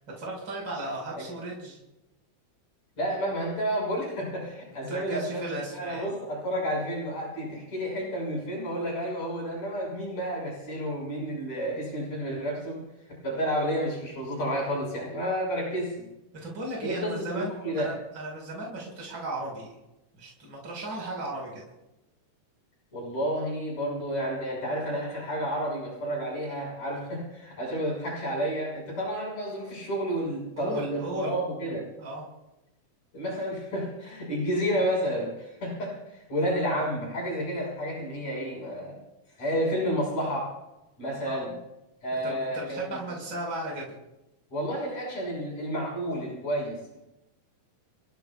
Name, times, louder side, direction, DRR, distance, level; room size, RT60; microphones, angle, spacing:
voice 1, 0.2-1.8 4.7-6.1 16.4-19.8 20.2-21.7 30.6-31.3 32.0-32.2 41.2-41.6 42.1-43.9, right 2 dB, 35° right, -2 dB, 5.8 m, -36 dB
voice 2, 3.0-12.8 13.1-16.1 16.8-17.9 22.9-31.8 33.1-39.0 39.4-40.5 41.0-41.5 42.0-43.0 44.5-47.0, equal, 55° left, -3 dB, 7.4 m, -31 dB
29.5 x 16.0 x 2.4 m, 0.91 s
omnidirectional pair, 3.7 m